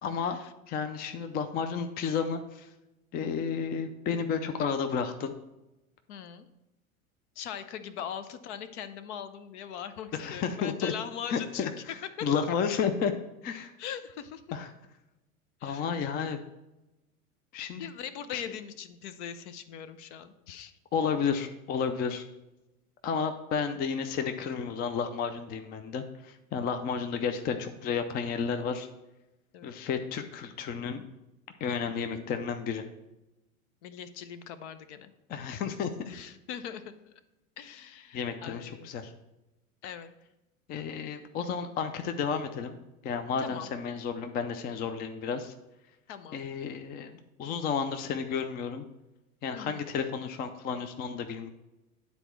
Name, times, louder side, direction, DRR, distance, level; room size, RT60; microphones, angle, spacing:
voice 1, 0.0-0.4 0.7-2.7 3.1-5.3 10.1-10.9 11.3-11.7 12.2-13.1 13.4-13.7 14.5-14.7 15.6-16.4 17.5-17.9 18.3-18.4 20.9-22.2 23.0-28.9 29.6-31.0 31.6-32.8 35.3-35.9 38.1-39.1 40.7-42.8 43.0-45.5 46.3-48.8 49.4-51.5, left 6 dB, 20° left, 8 dB, 0.5 m, -32 dB
voice 2, 6.1-6.5 7.4-12.3 13.8-14.4 15.6-15.9 17.8-20.7 23.7-23.8 29.5-29.7 33.8-35.1 36.0-37.2 37.6-38.9 39.8-40.1 43.4-43.7 46.1-46.4 49.5-49.8, left 8 dB, 55° left, 12 dB, 0.7 m, -41 dB
9.7 x 4.1 x 4.5 m, 0.98 s
figure-of-eight pair, 90°, 43 cm